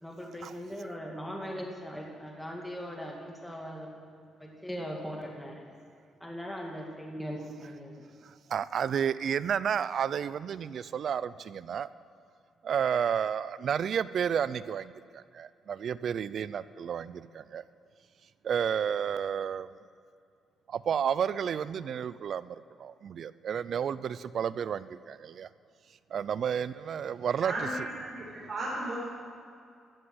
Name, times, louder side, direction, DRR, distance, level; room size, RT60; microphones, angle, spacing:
voice 1, 0.0-3.9 4.4-5.7 6.2-7.9, equal, 5° left, 0 dB, 2.3 m, -39 dB
voice 2, 8.2-11.9 12.6-17.6 18.4-19.7 20.7-25.5 26.1-27.9 28.4-28.5, right 8 dB, 60° right, 17 dB, 0.4 m, -31 dB
voice 3, 27.4-29.0, right 1 dB, 40° right, -6 dB, 3.9 m, -35 dB
14.0 x 7.7 x 7.8 m, 2.3 s
cardioid pair, 90°, 0 cm